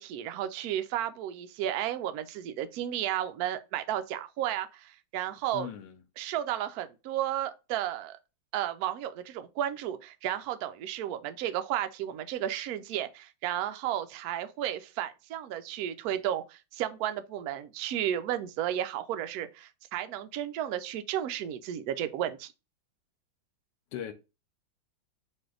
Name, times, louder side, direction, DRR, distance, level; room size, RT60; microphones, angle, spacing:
voice 1, 0.0-5.7 6.2-8.2 8.5-22.5, right 11 dB, 90° right, 0.8 m, -33 dB
voice 2, 5.5-6.0 23.9-24.1, left 10 dB, 70° left, 1.2 m, -38 dB
4.1 x 2.6 x 3.7 m
omnidirectional pair, 2.2 m